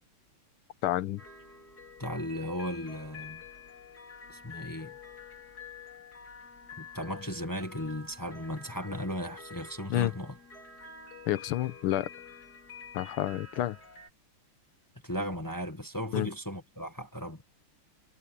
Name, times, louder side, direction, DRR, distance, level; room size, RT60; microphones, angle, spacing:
voice 1, 0.8-1.2 9.9-10.1 11.3-12.1 12.9-13.8 16.1-16.3, left 14 dB, 85° left, 1.6 m, -29 dB
sound 1, 1.2-14.1, left 5 dB, 45° left, 4.9 m, -48 dB
voice 2, 2.0-3.4 4.3-4.9 6.8-10.4 15.0-17.4, equal, 10° left, 1.3 m, -36 dB
omnidirectional pair, 2.3 m